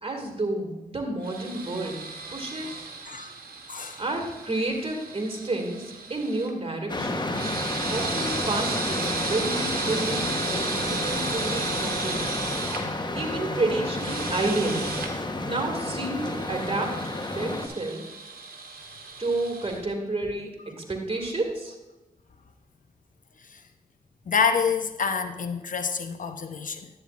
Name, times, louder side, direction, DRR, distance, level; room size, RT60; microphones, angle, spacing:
voice 1, 0.0-2.0 2.3-2.9 4.0-7.5 7.9-10.2 10.8-12.3 13.1-15.0 15.4-18.0 19.2-21.8, right 2 dB, 40° right, 2 dB, 2.1 m, -30 dB
sound 1, 1.2-6.5 7.3-12.8 13.9-15.1 16.2-19.8, right 4 dB, 80° right, 1.2 m, -34 dB
voice 2, 3.7-4.0 23.4-23.6 24.3-26.9, left 6 dB, 60° left, 9 dB, 0.7 m, -27 dB
sound 2, 6.9-17.7, left 2 dB, 30° left, 1.0 m, -31 dB
10.5 x 9.0 x 2.5 m, 1.0 s
supercardioid pair, 40°, 15 cm